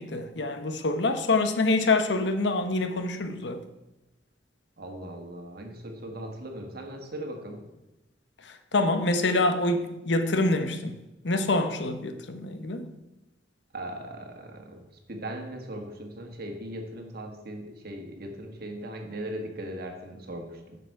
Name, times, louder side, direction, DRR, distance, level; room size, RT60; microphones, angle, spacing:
voice 1, 0.0-3.6 8.4-11.0 11.2-12.9, left 2 dB, 70° left, 0.9 m, -26 dB
voice 2, 4.8-7.7 13.7-14.8 15.1-20.8, right 1 dB, 60° right, 1.5 m, -38 dB
11.0 x 6.9 x 4.7 m
head